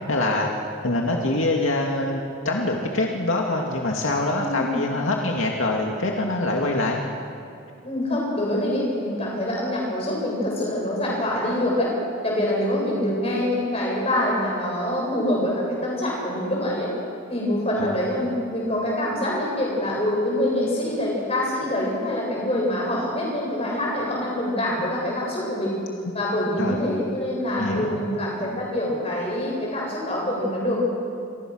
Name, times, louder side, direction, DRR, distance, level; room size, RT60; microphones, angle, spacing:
voice 1, 0.1-0.5 0.8-7.0 17.8-18.0 26.6-26.8 27.5-27.9, left 2 dB, 75° left, 0 dB, 2.4 m, -24 dB
voice 2, 4.4-4.7 7.8-11.9 12.2-16.9 17.3-25.7 26.1-30.9, left 1 dB, 30° left, -3 dB, 8.0 m, -25 dB
28.5 x 24.0 x 6.5 m, 2.6 s
head